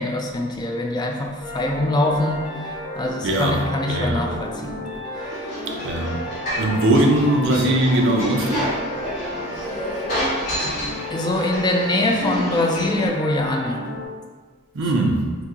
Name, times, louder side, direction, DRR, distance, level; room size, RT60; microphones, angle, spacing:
voice 1, 0.0-4.8 5.2-5.6 10.6-10.8 11.1-13.8, left 1 dB, 20° left, 1 dB, 0.4 m, -24 dB
sound 1, 1.4-14.1, left 1 dB, 5° right, 0.7 m, -33 dB
voice 2, 3.2-3.6 3.9-4.2 5.8-6.1 6.6-8.7 14.7-15.3, right 1 dB, 60° right, 1 dB, 0.5 m, -20 dB
sound 2, 5.1-13.1, equal, 45° left, 1.5 m, -29 dB
2.9 x 2.7 x 3.6 m, 1.5 s
head